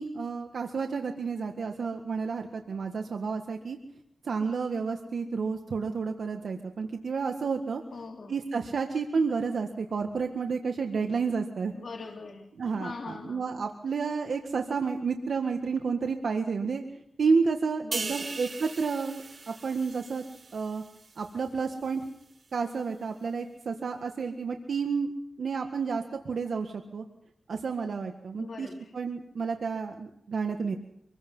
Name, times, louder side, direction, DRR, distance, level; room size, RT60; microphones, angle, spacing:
voice 1, 0.0-3.8 4.2-7.8 8.3-11.7 12.6-16.8 17.2-20.2 20.5-20.8 21.2-22.0 22.5-25.1 25.4-27.0 27.5-28.7 28.9-30.8, right 5 dB, 75° right, 4 dB, 1.7 m, -30 dB
voice 2, 7.9-8.4 11.7-13.7 17.8-18.4 28.4-28.9, left 4 dB, 60° left, 0 dB, 3.1 m, -42 dB
sound 1, 17.9-21.4 21.8-22.1, right 4 dB, 50° right, 0.9 m, -39 dB
26.5 x 21.5 x 5.6 m, 0.77 s
cardioid pair, 65°, 0 cm